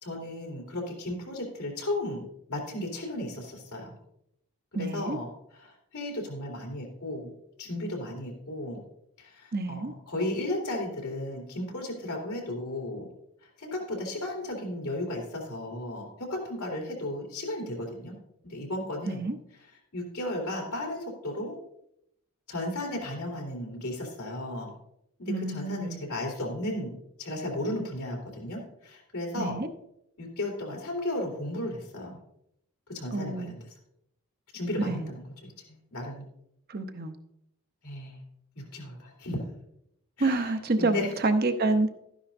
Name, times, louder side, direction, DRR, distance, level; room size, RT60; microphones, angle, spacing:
voice 1, 0.0-3.9 4.7-7.3 7.6-8.8 9.2-13.1 13.6-18.2 18.4-19.3 19.9-21.5 22.5-24.7 25.2-29.6 30.2-32.2 32.9-33.7 34.5-36.2 37.8-38.2 38.5-39.4 40.2-41.1, left 1 dB, 85° left, -1 dB, 3.0 m, -35 dB
voice 2, 4.7-5.2 9.5-9.9 19.1-19.3 25.3-26.0 29.4-29.7 33.1-33.5 34.9-35.1 36.7-37.1 40.2-41.9, right 2 dB, 45° right, 8 dB, 0.8 m, -28 dB
12.5 x 10.0 x 2.6 m, 0.77 s
head